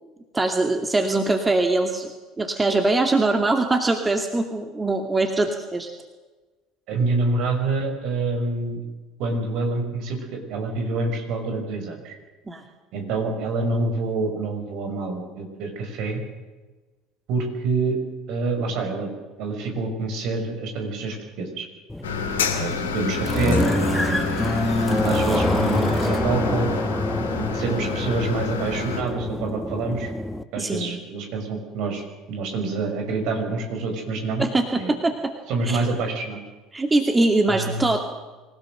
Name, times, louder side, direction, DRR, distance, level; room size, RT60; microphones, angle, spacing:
voice 1, 0.3-2.1 2.4-5.9 12.5-12.6 30.6-31.0 34.4-35.3 35.6-35.8 36.7-38.0, right 2 dB, 20° right, 5 dB, 2.3 m, -22 dB
voice 2, 6.9-8.8 9.2-12.2 12.9-16.2 17.3-18.0 18.3-19.1 19.4-21.6 22.5-24.4 25.0-26.7 27.2-30.1 30.5-34.4 34.7-34.9 35.5-36.4 37.5-37.9, right 3 dB, 55° right, 4 dB, 6.0 m, -27 dB
sound 1, 21.9-30.4, left 1 dB, 5° left, 1.3 m, -25 dB
sound 2, 22.0-29.0, left 6 dB, 75° left, 2.7 m, -29 dB
25.5 x 17.0 x 7.8 m, 1.2 s
figure-of-eight pair, 65°, 0 cm